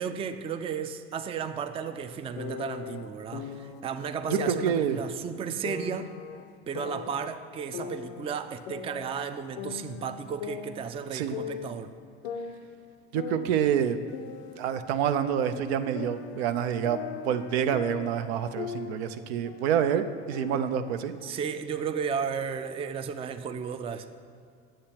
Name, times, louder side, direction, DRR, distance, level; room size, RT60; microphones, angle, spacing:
voice 1, 0.0-6.1 6.7-11.9 21.2-24.1, right 6 dB, 20° right, 9 dB, 0.3 m, -34 dB
sound 1, 2.4-3.8 4.3-4.8 5.6-7.3 7.7-9.3 9.6-11.8 12.2-14.7 15.0-19.2 19.4-19.8 20.3-21.3, left 7 dB, 90° left, 0.6 m, -39 dB
voice 2, 4.3-5.0 11.1-11.3 13.1-14.0 14.6-21.1, right 8 dB, 80° right, 10 dB, 0.5 m, -27 dB
10.0 x 7.6 x 2.9 m, 2.3 s
hypercardioid pair, 85°, 31 cm